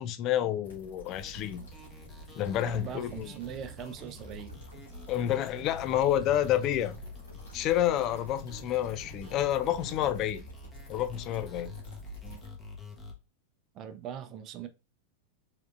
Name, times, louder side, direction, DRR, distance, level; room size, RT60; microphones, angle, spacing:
voice 1, 0.0-1.6 2.4-3.3 5.1-7.0 7.5-10.4 10.9-11.7, left 11 dB, 35° left, 0.4 m, -29 dB
sound 1, 0.6-12.5, equal, 65° left, 2.5 m, -49 dB
sound 2, 1.1-13.1, left 3 dB, 15° left, 1.3 m, -47 dB
voice 2, 2.6-4.5 13.7-14.7, right 9 dB, 35° right, 0.6 m, -41 dB
sound 3, 3.0-9.8, left 2 dB, 85° right, 0.9 m, -56 dB
4.9 x 3.6 x 2.5 m
figure-of-eight pair, 90°, 0 cm